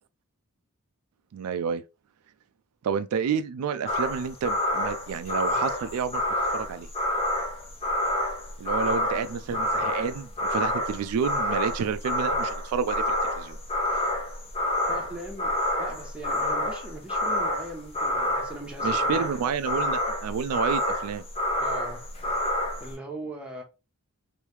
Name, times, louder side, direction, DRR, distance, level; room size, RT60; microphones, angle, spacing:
voice 1, 1.3-1.8 2.8-6.2 6.5-6.9 8.6-13.6 18.8-21.2, right 6 dB, 80° right, 0.3 m, -29 dB
sound 1, 3.9-22.9, left 1 dB, 25° left, 0.8 m, -28 dB
voice 2, 8.8-9.7 14.9-19.5 21.6-22.0 22.8-23.6, right 1 dB, 5° right, 0.8 m, -40 dB
3.1 x 2.7 x 3.2 m
head